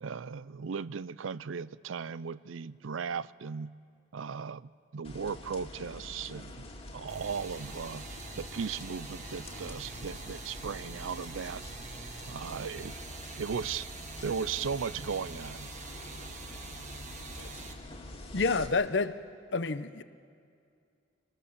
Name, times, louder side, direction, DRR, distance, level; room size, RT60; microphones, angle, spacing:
voice 1, 0.0-3.7 4.1-6.7 6.9-8.1 8.4-11.6 12.3-13.0 13.4-13.9 14.2-15.7, right 6 dB, 90° right, 0.5 m, -37 dB
sound 1, 5.0-18.7, left 1 dB, 30° left, 2.0 m, -46 dB
sound 2, 7.1-17.7, right 4 dB, 40° right, 1.5 m, -45 dB
voice 2, 18.3-19.2 19.5-20.0, left 4 dB, 65° left, 0.8 m, -29 dB
26.0 x 19.5 x 7.3 m
head